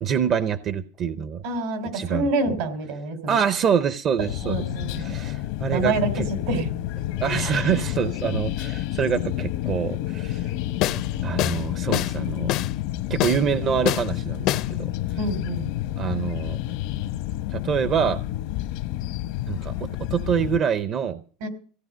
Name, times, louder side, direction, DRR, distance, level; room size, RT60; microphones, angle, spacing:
voice 1, 0.0-1.4 1.9-2.6 3.3-4.6 5.0-6.3 7.2-10.5 11.2-12.5 13.1-14.9 16.0-16.6 17.5-18.2 19.5-21.2, right 7 dB, 40° right, 13 dB, 0.6 m, -26 dB
voice 2, 1.4-3.3 4.4-5.2 5.7-6.1 6.5-6.7 7.2-7.4 15.2-15.7 21.4-21.5, right 2 dB, 80° right, 7 dB, 3.3 m, -27 dB
sound 1, 4.2-20.6, left 14 dB, 75° left, 0.9 m, -29 dB
sound 2, 10.8-11.1 11.4-11.6 11.9-12.2 12.5-12.7 13.2-13.4 13.9-14.1 14.5-14.7, left 14 dB, 55° left, 0.5 m, -24 dB
16.5 x 9.1 x 6.3 m, 0.42 s
supercardioid pair, 135°, 0 cm